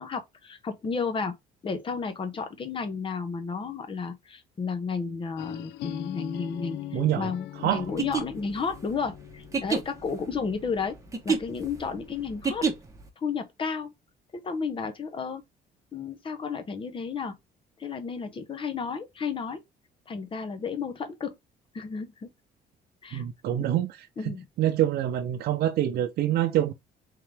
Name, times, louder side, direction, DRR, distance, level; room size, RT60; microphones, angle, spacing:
voice 1, 0.0-1.3 1.6-6.8 7.2-11.0 11.2-12.6 13.2-13.9 14.3-15.4 15.9-17.3 17.8-19.6 20.1-21.3 21.7-22.3 23.0-23.2 23.6-23.7 24.2-24.4, left 5 dB, 30° left, 1.0 m, -32 dB
sound 1, 5.4-11.1, left 14 dB, 80° left, 0.4 m, -41 dB
voice 2, 6.9-7.3 7.6-7.8 23.1-24.0 24.2-26.7, right 12 dB, 65° right, 0.6 m, -26 dB
sound 2, 7.8-13.1, right 5 dB, 20° right, 1.1 m, -29 dB
3.8 x 2.9 x 3.4 m
cardioid pair, 110°, 17 cm